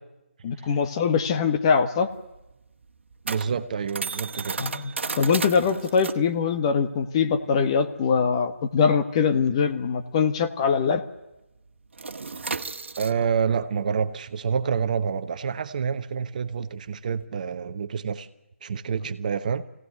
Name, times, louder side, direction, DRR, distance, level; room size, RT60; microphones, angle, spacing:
voice 1, 0.4-2.1 4.6-4.8 5.2-11.0, left 6 dB, 25° left, 1.2 m, -22 dB
sound 1, 1.7-10.7 11.0-11.2 11.5-17.3, right 4 dB, 65° right, 1.5 m, -35 dB
voice 2, 3.2-4.6 13.0-18.3 18.6-19.7, right 6 dB, 35° right, 1.1 m, -28 dB
23.5 x 18.0 x 9.4 m
figure-of-eight pair, 160°, 7 cm